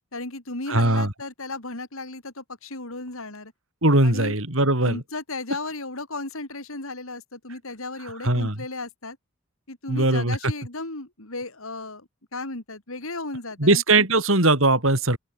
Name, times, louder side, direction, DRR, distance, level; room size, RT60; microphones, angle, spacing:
voice 1, 0.1-3.5 4.0-4.4 4.8-9.2 9.7-14.1, left 2 dB, 70° left, 3.8 m, -35 dB
voice 2, 0.7-1.1 3.8-5.0 8.2-8.5 9.9-10.5 13.6-15.2, right 2 dB, 60° right, 4.9 m, -20 dB
open air
head